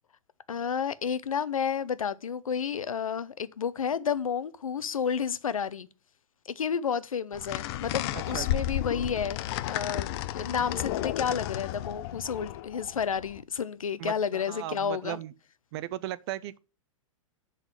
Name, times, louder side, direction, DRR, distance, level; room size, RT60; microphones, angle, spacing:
voice 1, 0.5-5.9 6.5-15.2, left 7 dB, 80° left, 0.8 m, -31 dB
sound 1, 7.3-13.4, left 13 dB, 50° left, 0.7 m, -33 dB
voice 2, 8.1-8.7 14.0-15.3 15.7-16.6, right 14 dB, 50° right, 0.6 m, -37 dB
10.5 x 4.1 x 7.7 m
figure-of-eight pair, 105°, 17 cm